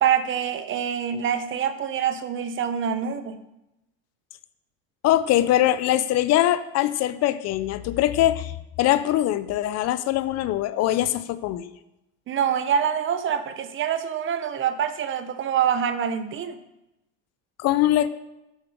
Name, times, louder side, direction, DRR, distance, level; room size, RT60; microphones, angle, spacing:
voice 1, 0.0-3.4 12.3-16.6, right 8 dB, 35° right, 11 dB, 0.7 m, -25 dB
voice 2, 5.0-11.7 17.6-18.1, left 13 dB, 50° left, 14 dB, 0.5 m, -22 dB
7.3 x 6.7 x 4.7 m, 0.92 s
supercardioid pair, 110°, 35 cm